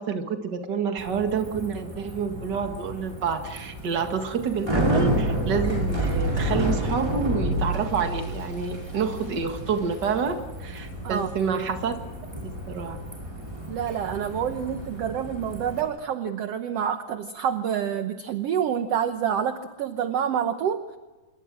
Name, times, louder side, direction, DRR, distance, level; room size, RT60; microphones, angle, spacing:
voice 1, 0.0-12.0 12.4-13.0, right 6 dB, 40° right, 6 dB, 2.0 m, -28 dB
Bicycle, 1.0-15.8, equal, 10° right, 6.1 m, -30 dB
voice 2, 13.7-21.0, right 8 dB, 65° right, 8 dB, 1.7 m, -27 dB
27.0 x 23.5 x 6.3 m, 1.2 s
omnidirectional pair, 3.8 m